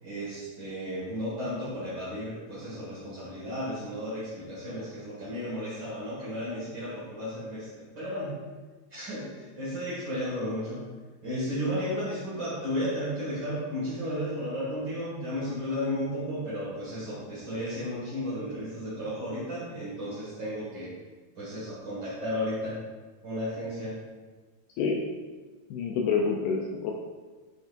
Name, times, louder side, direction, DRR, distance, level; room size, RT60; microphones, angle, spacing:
voice 1, 0.0-7.7 7.9-8.3 8.9-10.8 11.2-20.9 21.3-22.8 23.2-24.0, equal, 50° right, -9 dB, 1.2 m, -33 dB
voice 2, 25.7-26.9, left 5 dB, 85° left, -1 dB, 2.2 m, -27 dB
10.5 x 5.1 x 2.6 m, 1.3 s
omnidirectional pair, 5.2 m